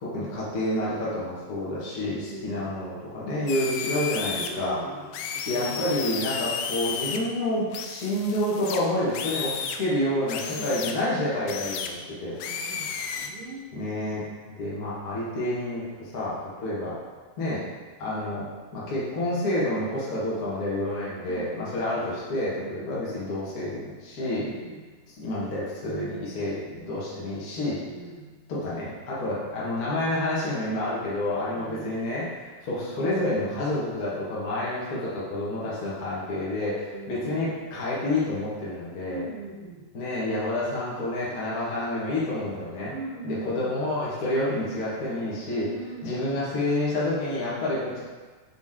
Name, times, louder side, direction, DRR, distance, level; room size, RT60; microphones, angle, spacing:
voice 1, 0.0-4.8 5.4-12.3 13.7-14.2 14.6-16.4 16.6-16.9 17.4-17.6 18.0-24.5 25.2-27.8 28.5-39.2 39.9-42.9 43.2-45.7 46.0-48.0, left 1 dB, 65° left, -8 dB, 0.9 m, -29 dB
voice 2, 2.2-2.7 4.3-5.8 10.5-11.0 12.4-13.7 21.2-22.0 22.5-23.0 24.4-24.9 27.8-28.3 31.5-32.0 36.9-37.4 39.1-39.8 42.9-43.8 45.6-46.3, right 2 dB, 60° right, -10 dB, 1.4 m, -41 dB
sound 1, 3.5-4.5 5.1-7.2 7.7-9.8 10.3-10.9 11.5-11.9 12.4-13.3, left 6 dB, 85° left, 2.4 m, -33 dB
6.1 x 4.1 x 3.7 m, 1.4 s
omnidirectional pair, 4.3 m